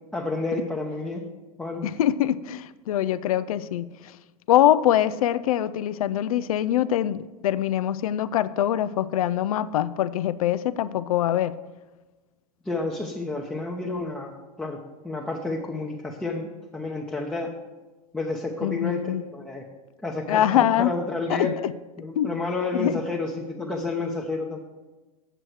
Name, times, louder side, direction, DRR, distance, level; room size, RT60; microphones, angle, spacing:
voice 1, 0.1-1.3 1.6-1.9 12.6-17.5 18.1-19.6 20.0-21.5 22.0-24.6, left 3 dB, 5° left, -2 dB, 0.8 m, -30 dB
voice 2, 1.8-3.9 4.5-11.5 18.6-19.2 20.3-20.9 21.3-21.7 22.1-22.4 22.7-22.9, left 11 dB, 75° left, 15 dB, 0.4 m, -23 dB
7.8 x 7.6 x 4.7 m, 1.2 s
hypercardioid pair, 105°, 19 cm